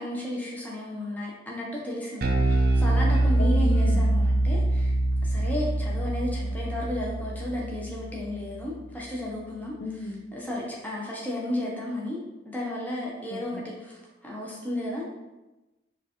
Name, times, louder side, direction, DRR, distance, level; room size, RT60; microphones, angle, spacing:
voice 1, 0.0-4.9 5.2-9.7 10.3-12.2 12.5-15.0, left 1 dB, 10° left, -4 dB, 0.7 m, -33 dB
Bass guitar, 2.2-8.7, right 1 dB, 50° right, 0.4 m, -24 dB
voice 2, 3.4-4.1 9.8-10.2 13.3-13.7, left 2 dB, 65° left, 2 dB, 0.5 m, -35 dB
4.4 x 2.4 x 2.9 m, 1.0 s
head